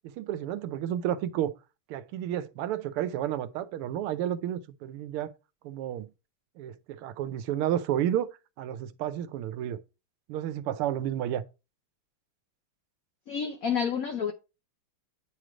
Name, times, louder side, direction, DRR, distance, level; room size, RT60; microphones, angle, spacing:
voice 1, 0.2-1.5 1.9-5.3 5.6-6.1 6.6-8.3 8.6-9.8 10.3-11.4, right 11 dB, 90° right, 1.6 m, -31 dB
voice 2, 13.3-14.3, left 7 dB, 85° left, 0.7 m, -29 dB
9.2 x 3.2 x 4.9 m
omnidirectional pair, 2.3 m